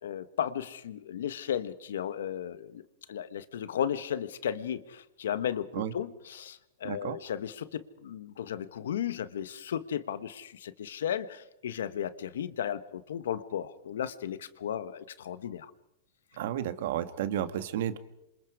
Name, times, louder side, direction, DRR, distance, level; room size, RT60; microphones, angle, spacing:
voice 1, 0.0-2.8 3.1-15.7, left 9 dB, 85° left, 14 dB, 1.3 m, -35 dB
voice 2, 6.8-7.2 16.4-18.0, right 11 dB, 65° right, 12 dB, 1.6 m, -32 dB
28.0 x 26.0 x 4.9 m, 0.84 s
supercardioid pair, 145°, 0 cm